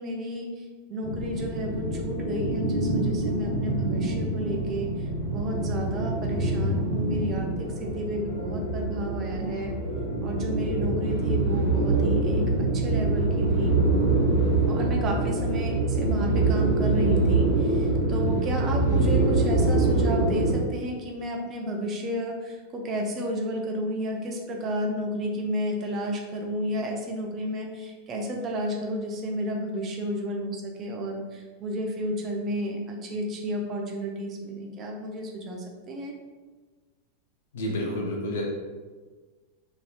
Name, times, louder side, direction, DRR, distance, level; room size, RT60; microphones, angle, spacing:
voice 1, 0.0-9.7 10.2-13.8 14.7-36.1, equal, 30° right, 1 dB, 0.5 m, -32 dB
sound 1, 1.0-20.6, right 2 dB, 80° right, 0.7 m, -25 dB
voice 2, 37.5-38.4, left 1 dB, 60° left, -2 dB, 0.5 m, -29 dB
2.9 x 2.8 x 2.2 m, 1.4 s
figure-of-eight pair, 90°, 0 cm